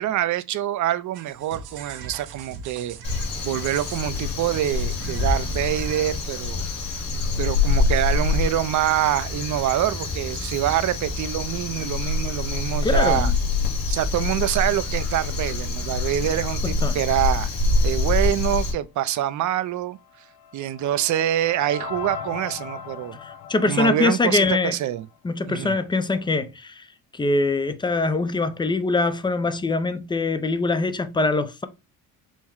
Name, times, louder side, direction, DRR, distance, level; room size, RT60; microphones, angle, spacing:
voice 1, 0.0-3.0 3.4-7.0 7.4-13.3 13.9-17.5 17.8-20.0 20.5-23.2 23.7-25.1 25.5-25.8, right 12 dB, 55° right, 0.5 m, -25 dB
sound 1, 1.1-6.5, right 5 dB, 85° right, 0.9 m, -41 dB
Crow, 3.0-18.7, left 3 dB, 65° left, 2.0 m, -25 dB
voice 2, 12.8-13.3 16.8-17.0 23.2-24.7 25.2-26.9 27.1-31.7, left 3 dB, 15° left, 0.4 m, -23 dB
sound 2, 20.0-25.2, left 8 dB, 90° left, 0.6 m, -39 dB
5.6 x 2.1 x 4.5 m
cardioid pair, 120°, 37 cm